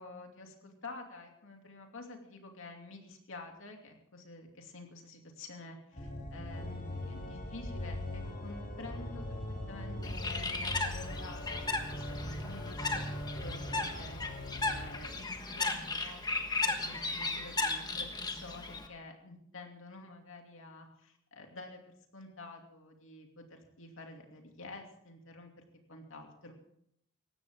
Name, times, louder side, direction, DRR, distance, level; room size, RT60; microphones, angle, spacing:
voice 1, 0.0-9.4 9.7-26.6, left 2 dB, 65° left, 3 dB, 2.7 m, -49 dB
Organ, 5.9-15.2, left 1 dB, 45° left, 3.5 m, -41 dB
Bird, 10.0-18.9, left 3 dB, 20° left, 1.4 m, -36 dB
19.0 x 15.0 x 3.7 m, 0.72 s
head